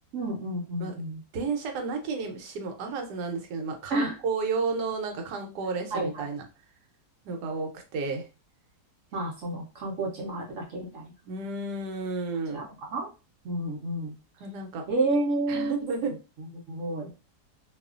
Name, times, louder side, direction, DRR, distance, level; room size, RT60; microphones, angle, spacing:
voice 1, 0.1-1.2 3.9-4.1 5.9-6.3 9.1-11.1 12.5-13.1 13.4-14.1 14.9-17.1, right 2 dB, 60° right, 0 dB, 0.9 m, -31 dB
voice 2, 1.3-6.4 7.2-8.3 11.2-12.6 14.4-14.8 15.5-16.1, right 4 dB, 75° right, 4 dB, 1.2 m, -32 dB
2.7 x 2.4 x 2.4 m, 0.31 s
omnidirectional pair, 1.8 m